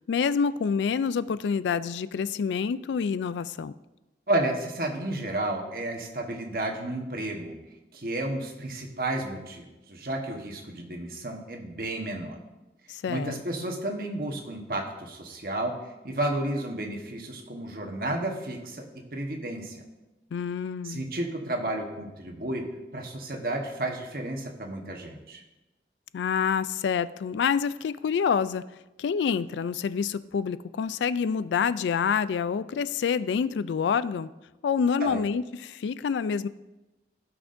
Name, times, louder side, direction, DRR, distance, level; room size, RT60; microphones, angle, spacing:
voice 1, 0.1-3.7 12.9-13.4 20.3-21.0 26.1-28.6 29.0-34.3 34.6-36.5, left 6 dB, 85° left, 16 dB, 0.3 m, -27 dB
voice 2, 4.3-7.6 7.9-12.4 13.1-15.7 16.0-19.8 20.8-22.6 22.9-25.4 35.0-35.2, right 1 dB, 55° right, 2 dB, 1.2 m, -32 dB
15.0 x 6.0 x 2.6 m, 1.0 s
head